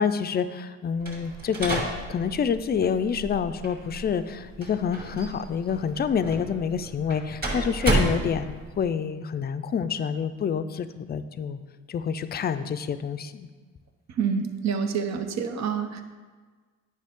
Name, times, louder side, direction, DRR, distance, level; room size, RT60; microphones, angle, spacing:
voice 1, 0.0-11.6 11.9-13.5, left 7 dB, 35° left, 11 dB, 0.4 m, -27 dB
sound 1, 1.0-8.8, right 2 dB, 30° right, 2.2 m, -31 dB
voice 2, 14.2-16.0, right 6 dB, 60° right, 7 dB, 0.8 m, -27 dB
9.1 x 5.3 x 3.6 m, 1.4 s
cardioid pair, 90°, 30 cm